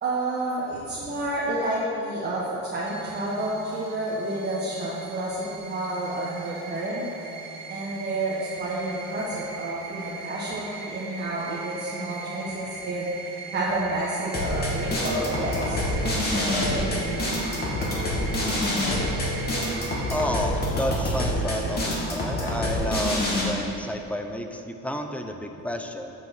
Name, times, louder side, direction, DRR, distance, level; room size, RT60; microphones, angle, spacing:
voice 1, 0.0-7.1 7.7-13.1 13.5-17.8 21.6-21.8, right 1 dB, 30° right, -6 dB, 1.4 m, -30 dB
sound 1, 2.9-20.1, right 5 dB, 65° right, 2.5 m, -40 dB
sound 2, 14.3-23.4, left 1 dB, 30° left, 2.3 m, -26 dB
voice 2, 20.1-26.1, left 1 dB, 5° left, 5 dB, 0.5 m, -31 dB
9.1 x 6.6 x 6.7 m, 2.9 s
cardioid pair, 150°, 31 cm